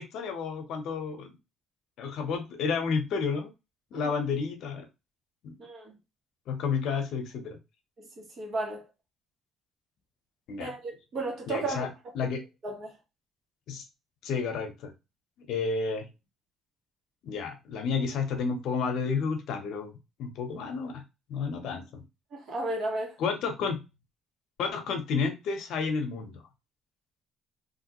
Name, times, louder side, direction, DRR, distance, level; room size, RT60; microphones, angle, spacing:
voice 1, 0.0-1.3 2.0-3.5 3.9-4.9 5.4-5.5 6.5-7.6 10.5-10.7 11.5-11.9 12.1-12.4 13.7-13.8 14.2-14.9 15.4-16.1 17.2-19.9 20.2-21.0 21.3-22.0 23.2-23.8 24.6-26.4, left 5 dB, 65° left, 0.8 m, -31 dB
voice 2, 5.6-6.0 8.0-8.8 10.6-11.9 12.6-12.9 22.3-23.2, right 2 dB, 45° right, 1.3 m, -34 dB
3.3 x 2.6 x 2.9 m
cardioid pair, 140°, 0 cm